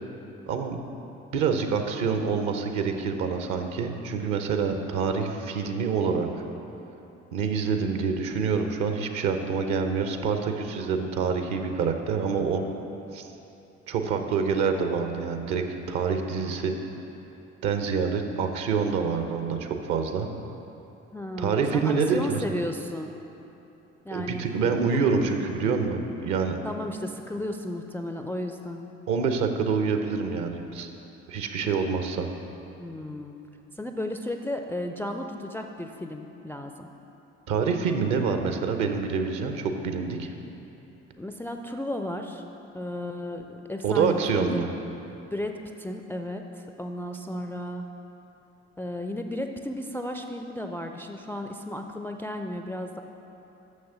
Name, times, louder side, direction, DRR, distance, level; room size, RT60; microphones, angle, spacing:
voice 1, 0.5-0.8 1.3-6.3 7.3-12.6 13.1-13.3 13.9-16.7 17.6-20.3 21.4-22.4 24.1-26.6 29.1-30.9 31.3-32.3 37.5-40.3 43.8-44.7, right 5 dB, 55° right, 6 dB, 0.9 m, -26 dB
voice 2, 21.1-23.1 24.0-24.4 24.8-25.0 26.6-28.9 32.8-33.4 33.8-36.9 41.2-42.4 42.7-44.6 45.3-47.9 48.8-53.0, left 1 dB, 5° left, 4 dB, 0.4 m, -34 dB
6.6 x 6.5 x 6.8 m, 2.9 s
figure-of-eight pair, 50°, 35 cm